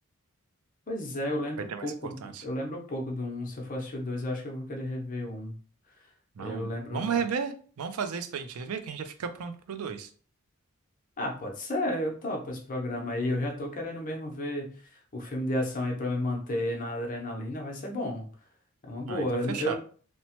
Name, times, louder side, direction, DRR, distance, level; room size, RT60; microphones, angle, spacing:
voice 1, 0.9-2.2 2.4-5.5 6.4-7.0 11.2-18.3 18.8-19.7, left 1 dB, 40° left, 1 dB, 0.6 m, -32 dB
voice 2, 1.7-2.4 6.4-10.1 19.0-19.7, right 6 dB, 90° right, 9 dB, 0.4 m, -34 dB
2.9 x 2.1 x 2.9 m, 0.41 s
head